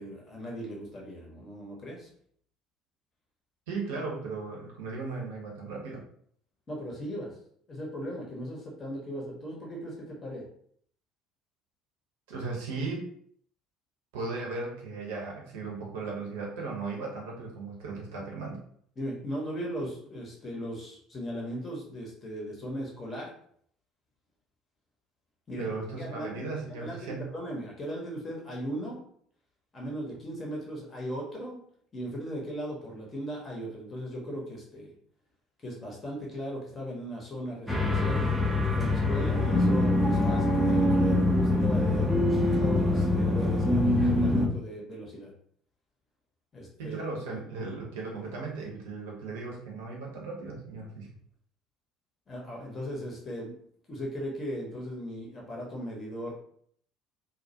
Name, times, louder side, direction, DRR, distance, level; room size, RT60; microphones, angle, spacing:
voice 1, 0.0-2.1 6.7-7.3 7.7-10.5 19.0-23.3 25.5-25.7 26.0-29.0 29.7-31.6 31.9-34.9 35.6-38.2 38.7-42.1 42.6-45.3 46.5-47.0 52.3-53.6 53.9-56.3, equal, 30° left, -2 dB, 0.8 m, -37 dB
voice 2, 3.7-6.0 12.3-13.0 14.1-18.6 25.6-27.3 46.8-51.1, right 3 dB, 65° right, -2 dB, 0.7 m, -36 dB
sound 1, 37.7-44.5, left 1 dB, ahead, 0.5 m, -24 dB
2.4 x 2.0 x 2.7 m, 0.63 s
figure-of-eight pair, 60°, 0 cm